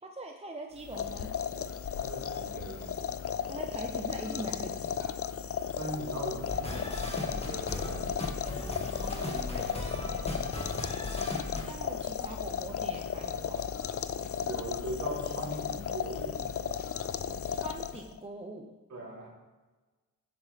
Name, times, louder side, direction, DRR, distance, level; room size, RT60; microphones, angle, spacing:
voice 1, 0.0-1.4 3.5-5.2 9.5-10.5 11.6-13.6 17.5-18.8, right 2 dB, 15° right, 3 dB, 0.8 m, -43 dB
sound 1, 0.8-18.2, left 8 dB, 40° left, 0.5 m, -35 dB
voice 2, 2.0-3.0 5.8-8.2 9.0-9.5 9.9-11.0 14.4-16.5 18.9-19.3, right 1 dB, 55° right, -3 dB, 3.3 m, -41 dB
sound 2, 6.5-11.6, left 1 dB, 15° left, 1.9 m, -37 dB
sound 3, 8.0-18.1, left 5 dB, 55° left, 1.0 m, -52 dB
13.0 x 8.3 x 3.5 m, 1.2 s
wide cardioid pair, 105°, 35 cm